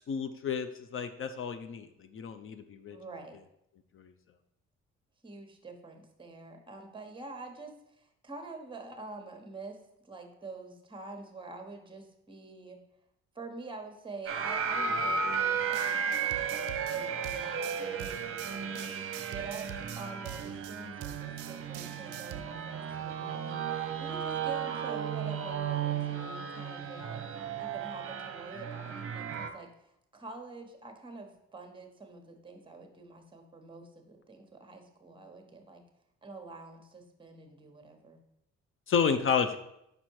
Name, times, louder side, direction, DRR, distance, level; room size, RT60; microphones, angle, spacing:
voice 1, 0.1-3.0 4.0-4.1 38.9-39.6, left 6 dB, 45° left, 9 dB, 0.6 m, -31 dB
voice 2, 2.9-3.4 5.2-9.8 10.0-12.8 13.3-18.7 19.3-27.2 27.6-29.7 30.1-35.8 36.2-38.2, right 3 dB, 15° right, 5 dB, 1.1 m, -46 dB
sound 1, 14.3-29.5, right 6 dB, 45° right, 0.8 m, -34 dB
sound 2, 15.7-22.4, right 11 dB, 75° right, 0.5 m, -45 dB
5.3 x 4.3 x 4.6 m, 0.79 s
cardioid pair, 90°, 30 cm